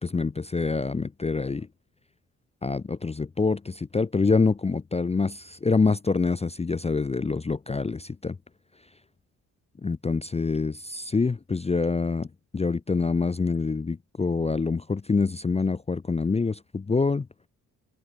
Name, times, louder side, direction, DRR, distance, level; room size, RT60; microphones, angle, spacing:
voice 1, 0.0-1.7 2.6-8.4 9.8-12.3 12.5-17.3, left 4 dB, 15° left, 0.6 m, -26 dB
hypercardioid pair, 40°, 41 cm